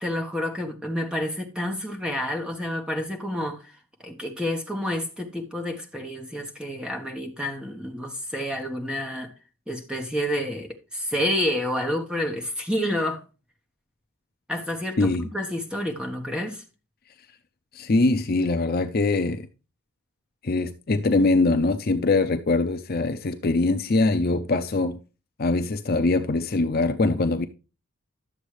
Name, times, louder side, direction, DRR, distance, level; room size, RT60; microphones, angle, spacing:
voice 1, 0.0-3.7 4.0-9.3 9.7-13.2 14.5-16.6, left 1 dB, 5° right, 1.2 m, -29 dB
voice 2, 15.0-15.3 17.7-19.5 20.4-25.0 25.4-27.5, left 3 dB, 45° left, 0.6 m, -22 dB
11.5 x 7.2 x 3.2 m
head